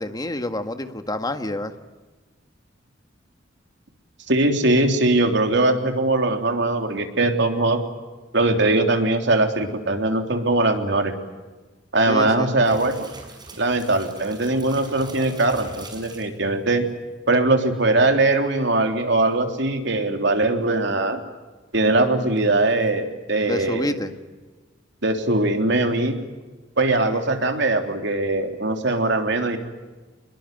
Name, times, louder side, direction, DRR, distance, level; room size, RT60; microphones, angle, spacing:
voice 1, 0.0-1.7 12.1-12.5 23.5-24.1, left 1 dB, 20° left, 8 dB, 1.7 m, -28 dB
voice 2, 4.3-7.8 8.3-11.1 11.9-13.1 13.6-16.9 17.3-21.2 21.7-23.9 25.0-26.1 26.8-29.6, right 2 dB, 65° right, 5 dB, 3.4 m, -21 dB
plastic gas container pour gas or water on ground wet sloppy, 12.6-16.4 22.4-22.9, right 2 dB, 25° right, 5.9 m, -42 dB
26.0 x 22.0 x 9.2 m, 1.3 s
head